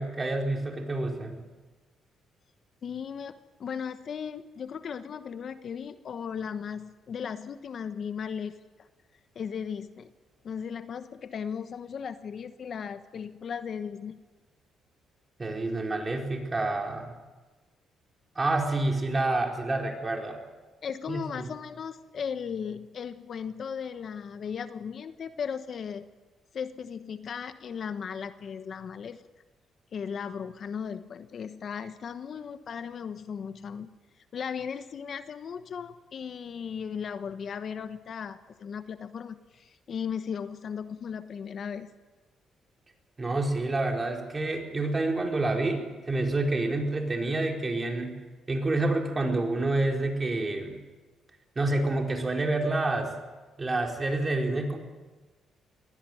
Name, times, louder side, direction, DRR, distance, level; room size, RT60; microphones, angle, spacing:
voice 1, 0.0-1.4 15.4-17.1 18.3-20.4 21.1-21.5 43.2-48.2 48.5-50.8 51.5-53.1 53.6-54.8, right 2 dB, 25° right, 2 dB, 4.6 m, -28 dB
voice 2, 2.8-3.3 3.6-8.6 9.3-10.1 10.4-14.2 20.8-26.0 26.5-29.2 29.9-33.9 34.3-41.9, left 7 dB, 55° left, 11 dB, 1.1 m, -36 dB
22.0 x 17.0 x 9.2 m, 1.2 s
cardioid pair, 90°, 0 cm